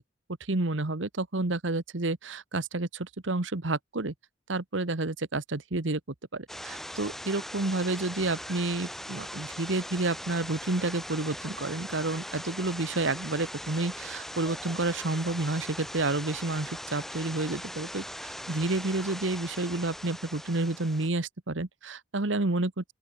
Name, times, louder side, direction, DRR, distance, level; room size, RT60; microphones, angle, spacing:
voice 1, 0.5-4.1 4.5-6.0 6.3-22.9, right 2 dB, 75° right, 1.4 m, -30 dB
sound 1, 6.5-21.1, equal, ahead, 4.1 m, -40 dB
open air
head